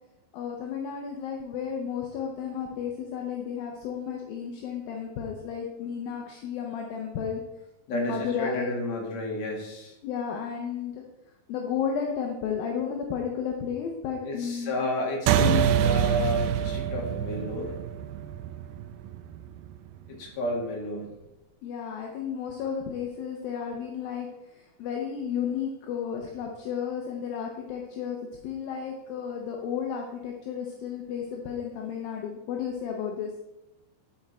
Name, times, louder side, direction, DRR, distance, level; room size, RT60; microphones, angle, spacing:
voice 1, 0.3-7.4 7.9-8.7 10.0-11.0 11.5-14.7 21.6-33.3, left 7 dB, 75° left, 1 dB, 2.2 m, -33 dB
voice 2, 7.9-9.9 14.2-17.7 20.1-21.2, left 1 dB, 45° left, -1 dB, 2.7 m, -32 dB
sound 1, 15.3-20.1, right 9 dB, 85° right, 2.3 m, -26 dB
11.0 x 6.4 x 4.3 m, 0.95 s
omnidirectional pair, 5.2 m